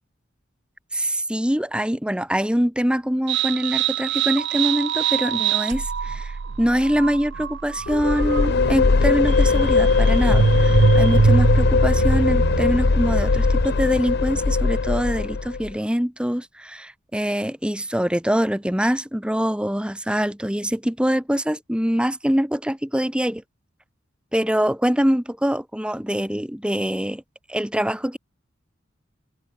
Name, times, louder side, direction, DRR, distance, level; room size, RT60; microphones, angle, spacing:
voice 1, 0.9-23.4 24.3-27.2 27.5-28.2, equal, 5° right, 1.5 m, -24 dB
sound 1, 3.3-13.9, right 5 dB, 60° right, 0.5 m, -24 dB
sound 2, 7.9-15.7, left 4 dB, 55° left, 0.6 m, -20 dB
head